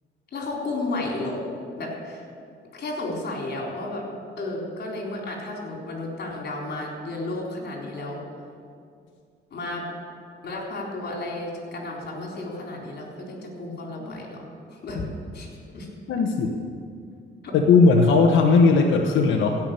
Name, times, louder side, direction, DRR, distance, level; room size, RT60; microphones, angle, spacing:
voice 1, 0.3-1.4 1.8-2.2 2.7-4.0 4.4-8.2 9.5-9.9 10.4-15.0 15.3-15.5 15.7-15.9 17.4-17.5, left 2 dB, 55° left, -1 dB, 3.9 m, -32 dB
voice 2, 16.1-16.6 17.5-19.6, left 4 dB, 75° left, 1 dB, 1.1 m, -17 dB
16.0 x 6.0 x 8.8 m, 2.3 s
cardioid pair, 90°, 20 cm